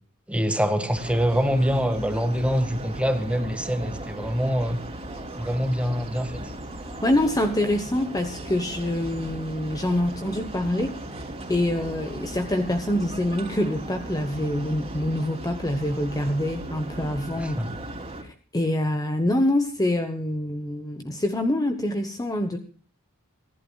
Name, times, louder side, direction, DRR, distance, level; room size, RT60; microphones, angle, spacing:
voice 1, 0.3-4.8 5.4-6.4 17.4-17.8, equal, 5° right, 1.6 m, -25 dB
sound 1, 0.9-18.2, right 1 dB, 25° right, 2.8 m, -37 dB
voice 2, 7.0-11.0 11.5-17.6 18.2-22.6, left 1 dB, 15° left, 1.0 m, -25 dB
28.5 x 11.5 x 2.3 m
head